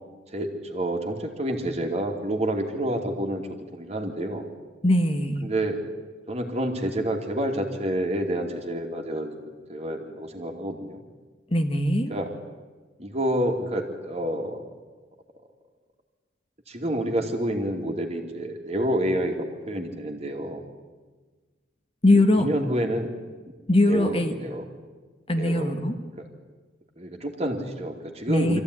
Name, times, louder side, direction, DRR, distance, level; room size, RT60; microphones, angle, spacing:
voice 1, 0.3-4.5 5.4-5.8 6.3-9.4 9.7-11.0 12.1-12.3 13.0-14.6 16.7-20.6 22.1-23.1 23.9-24.7 25.3-25.7 26.2-26.3 27.0-28.6, right 1 dB, 35° right, 3 dB, 2.6 m, -28 dB
voice 2, 4.8-5.4 11.5-12.1 22.0-22.5 23.7-24.3 25.3-26.0 28.3-28.6, left 1 dB, 30° left, 6 dB, 1.4 m, -21 dB
24.5 x 15.0 x 9.8 m, 1.3 s
head